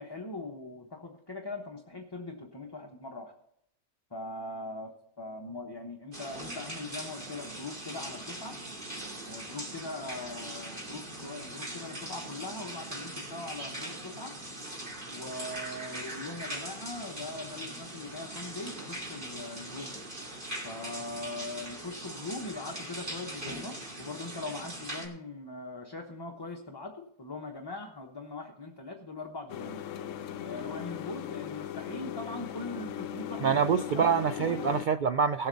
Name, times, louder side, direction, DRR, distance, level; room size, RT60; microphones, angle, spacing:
voice 1, 0.0-3.3 4.1-8.6 9.3-14.4 15.1-20.0 20.6-29.8 30.4-33.5 33.9-34.7, left 2 dB, 20° left, 1 dB, 1.0 m, -41 dB
sound 1, 6.1-25.1, right 1 dB, 35° right, 2.8 m, -41 dB
sound 2, 29.5-34.9, left 10 dB, 70° left, 1.0 m, -38 dB
voice 2, 33.4-35.5, right 6 dB, 85° right, 11 dB, 0.4 m, -26 dB
18.0 x 8.0 x 4.0 m, 0.71 s
omnidirectional pair, 1.5 m